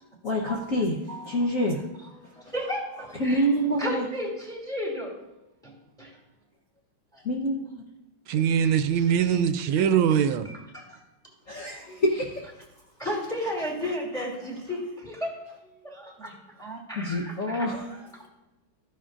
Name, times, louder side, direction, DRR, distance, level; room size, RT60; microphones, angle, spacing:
voice 1, 0.2-1.8 2.2-2.5 3.2-4.1 7.2-7.8 11.5-12.7 13.0-13.1 13.4-13.5 13.8-14.3 17.0-18.1, equal, 50° left, -2 dB, 1.1 m, -28 dB
voice 2, 2.2-3.4 3.8-5.1 5.6-6.2 7.1-7.2 9.2-9.4 9.8-9.9 10.4-11.0 11.8-12.0 13.0-15.4 15.6-17.7 18.2-18.3, equal, ahead, -2 dB, 2.5 m, -34 dB
voice 3, 8.3-10.5, right 8 dB, 80° right, 10 dB, 1.4 m, -22 dB
13.5 x 10.0 x 2.5 m, 0.98 s
omnidirectional pair, 2.3 m